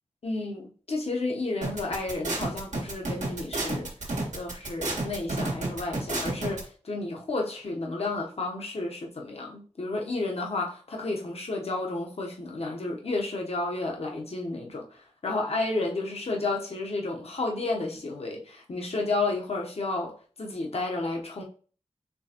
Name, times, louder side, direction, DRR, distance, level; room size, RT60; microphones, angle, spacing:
voice 1, 0.2-21.4, left 2 dB, 55° left, 0.8 m, -32 dB
sound 1, 1.6-6.6, right 2 dB, 85° right, 1.3 m, -30 dB
4.5 x 3.2 x 2.8 m
wide cardioid pair, 55°, 12 cm